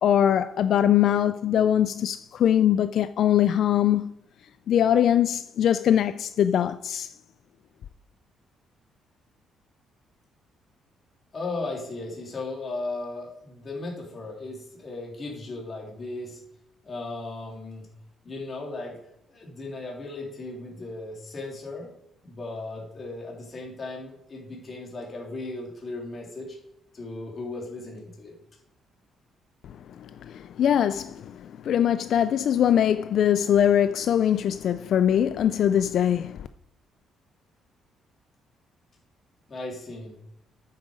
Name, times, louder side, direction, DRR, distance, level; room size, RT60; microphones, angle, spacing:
voice 1, 0.0-4.1 4.7-7.1 30.0-36.4, left 10 dB, 60° left, 0.3 m, -22 dB
voice 2, 11.3-16.4 16.8-17.8 18.2-19.0 19.3-21.9 22.2-26.6 26.9-28.3 39.5-40.2, left 2 dB, 30° left, 3.1 m, -36 dB
8.7 x 7.5 x 5.0 m
cardioid pair, 135°, 0 cm